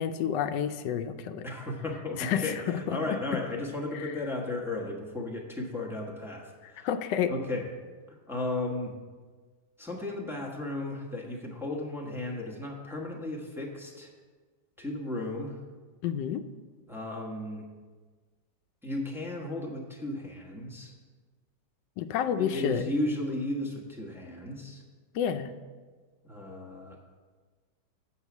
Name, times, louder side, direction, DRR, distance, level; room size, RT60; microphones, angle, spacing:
voice 1, 0.0-1.5 2.2-3.0 3.9-4.2 6.6-7.3 16.0-16.4 22.0-22.9 25.1-25.5, left 8 dB, 80° left, 10 dB, 1.2 m, -30 dB
voice 2, 1.4-6.4 6.7-6.9 7.3-7.6 8.1-8.9 9.8-14.1 14.8-15.6 16.9-17.6 18.8-20.9 22.4-24.8 26.2-27.0, left 2 dB, ahead, -2 dB, 1.0 m, -35 dB
8.0 x 5.6 x 7.1 m, 1.4 s
omnidirectional pair, 1.9 m